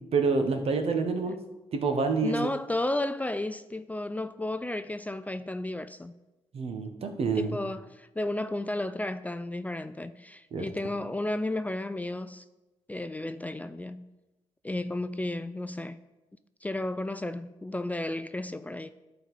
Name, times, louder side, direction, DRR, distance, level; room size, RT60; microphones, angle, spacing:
voice 1, 0.1-1.4 1.7-2.4 6.5-7.6 10.5-10.6, right 4 dB, 60° right, 1.2 m, -27 dB
voice 2, 2.2-6.1 7.3-12.4 12.9-14.1 14.6-16.0 16.6-18.9, left 1 dB, 15° left, 0.4 m, -33 dB
11.0 x 4.1 x 5.3 m
supercardioid pair, 55°, 11 cm